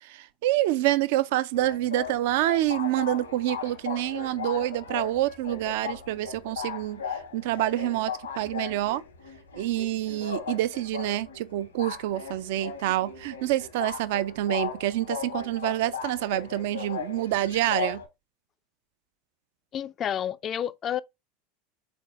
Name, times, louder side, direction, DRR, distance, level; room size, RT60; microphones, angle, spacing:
voice 1, 0.0-7.0 7.3-9.0 9.5-18.0, right 14 dB, 60° right, 0.4 m, -27 dB
sound 1, 1.5-18.1, left 6 dB, 80° left, 1.0 m, -37 dB
voice 2, 19.7-21.0, left 10 dB, 35° left, 0.3 m, -30 dB
4.0 x 3.4 x 3.5 m
figure-of-eight pair, 80°, 0 cm